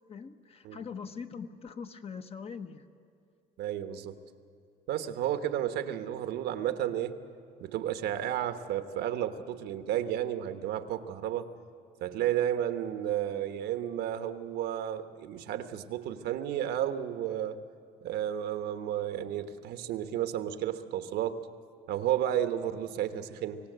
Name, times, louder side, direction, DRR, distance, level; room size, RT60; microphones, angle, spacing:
voice 1, 0.1-2.8, left 6 dB, 35° left, 8 dB, 1.1 m, -42 dB
voice 2, 3.6-4.1 4.9-7.2 7.6-11.5 12.0-17.6 18.0-21.4 21.9-23.6, right 11 dB, 80° right, 9 dB, 1.2 m, -32 dB
25.5 x 17.0 x 8.0 m, 2.6 s
cardioid pair, 110°, 17 cm